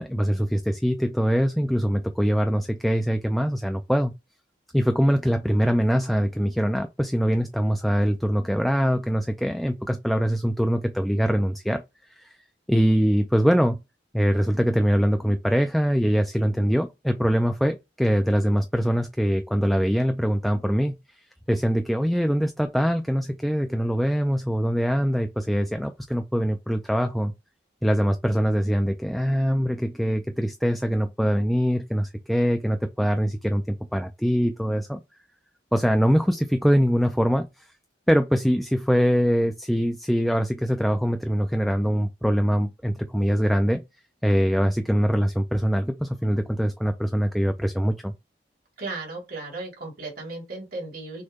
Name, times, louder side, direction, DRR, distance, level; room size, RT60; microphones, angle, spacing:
voice 1, 0.0-4.1 4.7-11.8 12.2-12.4 12.7-13.8 14.1-21.0 21.5-27.3 27.8-35.0 35.7-37.7 38.1-43.8 44.2-48.1, equal, ahead, 0.3 m, -23 dB
voice 2, 48.8-51.2, right 3 dB, 55° right, 2.3 m, -35 dB
6.3 x 2.2 x 3.5 m
head